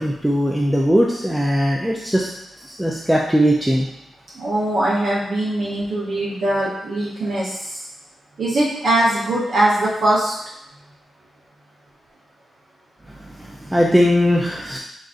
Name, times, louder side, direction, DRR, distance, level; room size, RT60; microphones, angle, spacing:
voice 1, 0.0-3.9 13.1-14.8, equal, 5° right, -2 dB, 0.3 m, -19 dB
voice 2, 4.4-7.8 8.4-10.3, right 1 dB, 60° right, -6 dB, 0.7 m, -21 dB
3.9 x 3.6 x 2.4 m, 0.84 s
wide cardioid pair, 150°, 0 cm